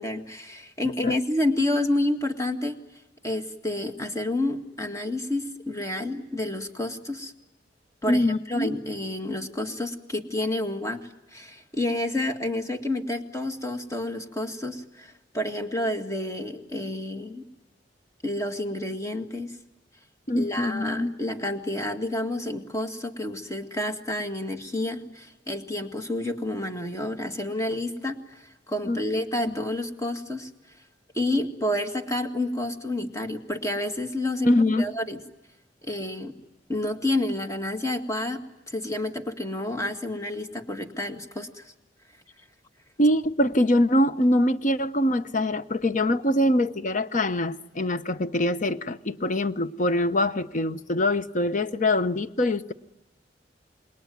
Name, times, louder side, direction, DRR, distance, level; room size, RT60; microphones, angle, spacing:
voice 1, 0.0-2.8 3.2-7.3 8.0-11.0 11.3-17.4 18.2-19.5 20.4-30.5 31.1-35.2 35.8-36.3 36.7-41.7, left 1 dB, 15° left, 2.0 m, -29 dB
voice 2, 8.1-8.7 20.3-21.2 28.9-29.0 29.5-29.6 34.4-35.0 43.0-52.7, left 1 dB, 45° left, 0.9 m, -24 dB
27.5 x 21.0 x 9.5 m
head